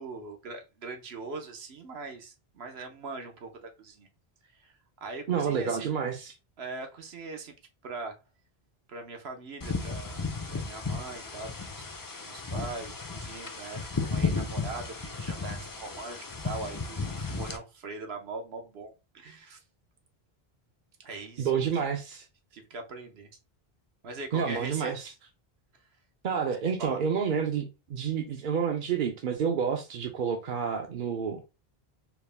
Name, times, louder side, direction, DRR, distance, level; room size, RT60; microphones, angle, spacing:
voice 1, 0.0-4.1 4.6-4.8 5.0-5.9 6.6-7.5 7.8-8.1 8.9-11.8 12.2-19.6 21.0-21.7 22.5-23.3 24.0-24.9 26.6-27.0, right 3 dB, 80° right, 1.1 m, -41 dB
voice 2, 5.3-6.3 21.4-22.2 24.3-25.1 26.2-31.4, right 7 dB, 60° right, 0.7 m, -29 dB
sound 1, 9.6-17.6, left 4 dB, 30° left, 0.4 m, -34 dB
4.6 x 2.2 x 3.3 m
omnidirectional pair, 1.0 m